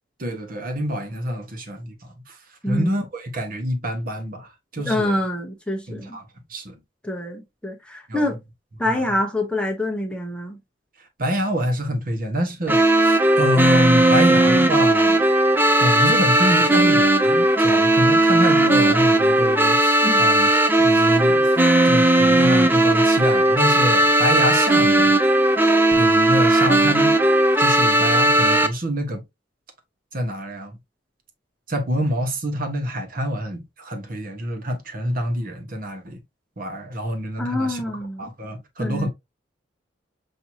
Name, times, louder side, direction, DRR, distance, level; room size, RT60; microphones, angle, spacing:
voice 1, 0.2-2.4 2.7-5.2 5.9-6.2 6.5-6.8 8.1-8.3 8.9-9.0 11.2-15.2 15.6-20.5 20.8-21.5 21.8-25.1 26.0-27.1 27.6-29.2 30.1-30.8 31.7-36.2 36.6-37.8 38.2-39.1, equal, 50° right, 1.1 m, -26 dB
voice 2, 2.6-2.9 4.8-6.2 7.0-8.4 8.8-10.6 20.0-20.3 37.4-38.3 38.8-39.1, left 1 dB, 5° left, 0.8 m, -26 dB
sound 1, 12.7-28.7, right 1 dB, 10° right, 0.4 m, -17 dB
6.1 x 2.7 x 2.7 m
head